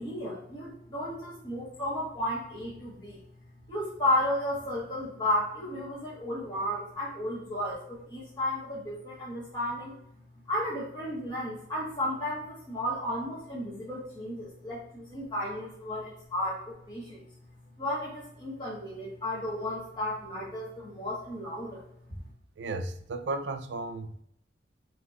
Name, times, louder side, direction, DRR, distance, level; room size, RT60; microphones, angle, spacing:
voice 1, 0.0-3.2 3.7-9.9 10.5-17.2 17.8-21.8, left 1 dB, 25° left, 1.4 m, -33 dB
voice 2, 22.6-24.2, right 2 dB, 70° right, 0.4 m, -34 dB
5.7 x 3.0 x 2.4 m
head